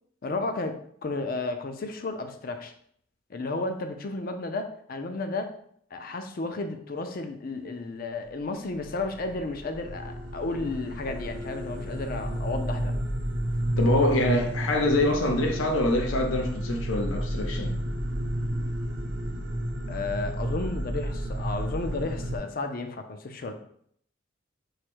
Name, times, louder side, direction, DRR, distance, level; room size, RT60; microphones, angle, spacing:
voice 1, 0.2-2.7 3.3-5.5 5.9-12.9 19.9-23.5, left 3 dB, 45° left, 0.4 m, -33 dB
sound 1, 8.8-22.4, equal, 65° right, 0.7 m, -31 dB
voice 2, 13.8-17.7, left 1 dB, 90° left, 0.6 m, -25 dB
4.8 x 2.1 x 4.5 m
head